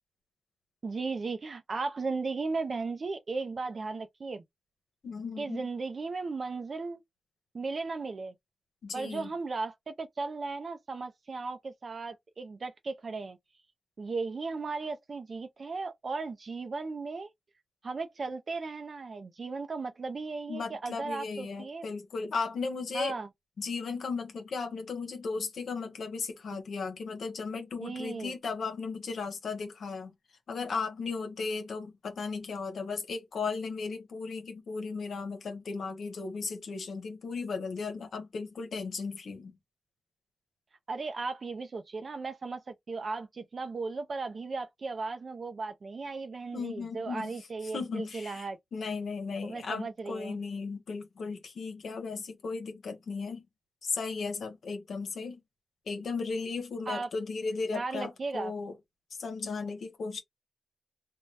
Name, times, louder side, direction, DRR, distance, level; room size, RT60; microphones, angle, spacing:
voice 1, 0.8-4.4 5.4-7.0 7.5-8.3 8.9-13.4 14.0-17.3 17.8-21.8 22.9-23.3 27.8-28.3 40.9-48.6 49.4-50.4 56.9-57.1 57.7-58.5, right 4 dB, 60° right, 0.4 m, -36 dB
voice 2, 5.0-5.6 8.8-9.3 20.5-23.2 23.6-30.1 30.5-39.5 46.5-53.4 53.8-55.4 55.9-58.7 59.2-60.2, left 4 dB, 80° left, 0.7 m, -36 dB
2.6 x 2.2 x 3.1 m
cardioid pair, 45°, 0 cm